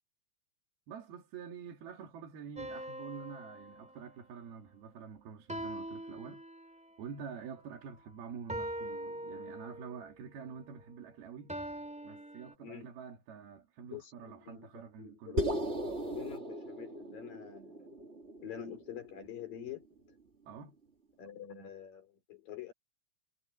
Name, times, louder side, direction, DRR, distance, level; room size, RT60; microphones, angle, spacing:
voice 1, 0.9-6.4 7.0-11.6 12.0-15.4 20.5-20.8, right 7 dB, 80° right, 4.4 m, -47 dB
sound 1, 2.6-4.4 5.5-7.0 8.5-10.0 11.5-12.5, right 1 dB, ahead, 2.8 m, -42 dB
voice 2, 12.6-12.9 13.9-18.0 18.4-20.2 21.2-22.7, left 9 dB, 65° left, 5.1 m, -46 dB
sound 2, 15.4-19.7, equal, 25° right, 1.7 m, -38 dB
omnidirectional pair, 4.3 m